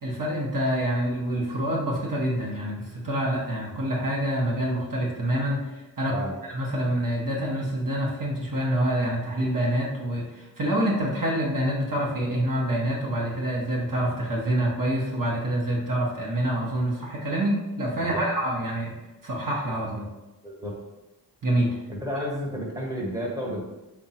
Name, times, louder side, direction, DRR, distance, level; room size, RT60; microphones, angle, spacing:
voice 1, 0.0-5.6 6.0-18.9 19.2-20.0 21.4-21.8, right 1 dB, 50° right, -4 dB, 1.0 m, -26 dB
voice 2, 20.4-20.8 21.9-23.6, equal, 10° right, -3 dB, 1.2 m, -31 dB
3.5 x 2.2 x 4.2 m, 1.0 s
cardioid pair, 40°, 43 cm